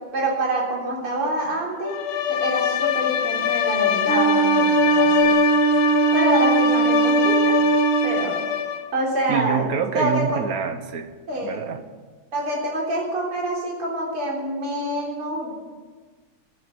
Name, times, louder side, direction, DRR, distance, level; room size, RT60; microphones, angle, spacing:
voice 1, 0.1-2.0 2.3-5.3 6.1-7.6 8.0-8.4 8.9-9.7 9.9-10.4 11.3-11.5 12.3-15.5, right 1 dB, 85° right, -3 dB, 4.5 m, -26 dB
Bowed string instrument, 1.8-8.9, left 9 dB, 75° left, 1.5 m, -23 dB
Wind instrument woodwind instrument, 4.1-8.3, right 6 dB, 30° left, 2.4 m, -20 dB
voice 2, 9.3-11.1 11.4-11.8, right 7 dB, 55° right, 9 dB, 1.2 m, -26 dB
11.0 x 10.5 x 9.8 m, 1.4 s
omnidirectional pair, 2.4 m